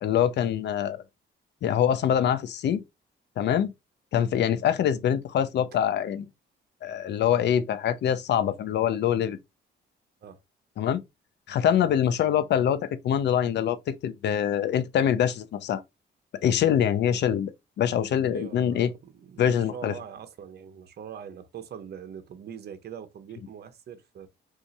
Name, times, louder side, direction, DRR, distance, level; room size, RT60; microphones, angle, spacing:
voice 1, 0.0-1.0 1.6-2.8 3.4-3.7 4.1-6.3 6.8-9.4 10.8-11.0 11.5-15.8 16.4-17.5 17.8-18.9 19.4-19.9, left 9 dB, 60° left, 0.5 m, -24 dB
voice 2, 18.3-24.3, right 8 dB, 55° right, 0.8 m, -42 dB
2.7 x 2.4 x 4.0 m
cardioid pair, 90°, 20 cm